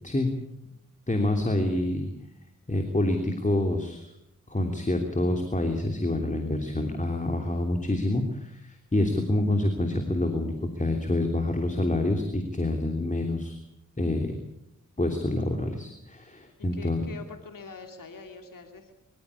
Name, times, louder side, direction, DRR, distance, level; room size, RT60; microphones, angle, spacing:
voice 1, 1.1-2.1 2.7-4.1 4.5-13.6 14.0-14.3 15.0-17.0, left 1 dB, 25° left, 4 dB, 3.1 m, -27 dB
voice 2, 16.7-18.9, left 4 dB, 80° left, 5 dB, 2.7 m, -44 dB
24.0 x 15.5 x 8.5 m, 0.81 s
cardioid pair, 55°, 32 cm